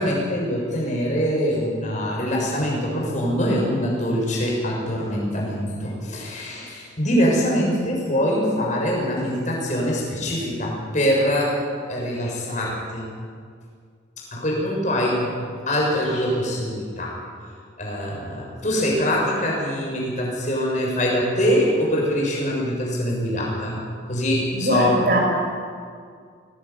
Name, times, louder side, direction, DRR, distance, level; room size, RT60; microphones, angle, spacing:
voice 1, 0.0-11.6 11.9-13.1 14.2-15.4 15.7-17.2 17.8-23.8 24.1-25.0, equal, 35° left, -3 dB, 6.7 m, -23 dB
voice 2, 24.5-25.2, right 2 dB, 50° right, -1 dB, 6.1 m, -21 dB
21.5 x 18.5 x 9.6 m, 2.1 s
head